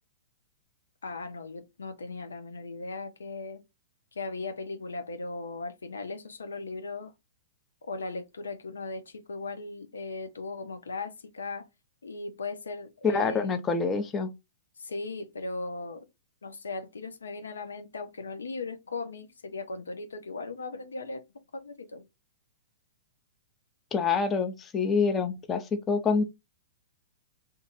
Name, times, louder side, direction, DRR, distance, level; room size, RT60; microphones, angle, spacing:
voice 1, 1.0-3.6 4.1-7.1 7.9-11.7 12.0-13.5 14.8-16.1 16.4-21.2 21.5-22.1, left 3 dB, 80° left, 0.5 m, -38 dB
voice 2, 13.0-14.3 23.9-26.2, left 5 dB, 20° left, 0.6 m, -26 dB
2.5 x 2.5 x 4.0 m
hypercardioid pair, 115°, 0 cm